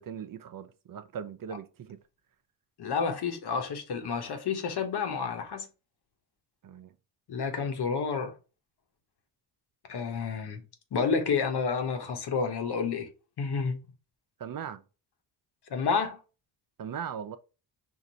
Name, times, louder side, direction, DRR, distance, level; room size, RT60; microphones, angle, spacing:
voice 1, 0.0-2.0 6.6-6.9 14.4-14.8 16.8-17.4, right 8 dB, 50° right, 0.7 m, -39 dB
voice 2, 2.8-5.6 7.3-8.3 9.9-10.6 10.9-13.1 13.4-13.8 15.7-16.2, left 5 dB, 65° left, 1.2 m, -30 dB
4.8 x 2.5 x 4.0 m
cardioid pair, 65°, 42 cm